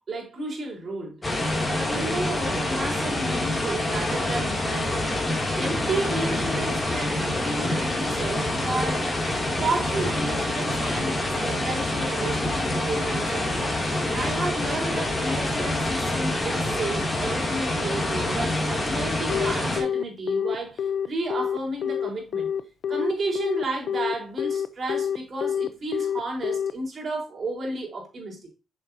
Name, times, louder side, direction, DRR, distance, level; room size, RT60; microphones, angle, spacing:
voice 1, 0.1-1.2 1.6-5.1 5.5-9.1 9.6-22.5 22.9-28.5, right 2 dB, 45° right, 4.1 m, -32 dB
sound 1, 1.2-19.8, left 1 dB, 20° left, 2.5 m, -26 dB
Telephone, 19.3-26.7, left 8 dB, 60° left, 0.5 m, -27 dB
7.1 x 6.7 x 2.7 m
cardioid pair, 90°, 0 cm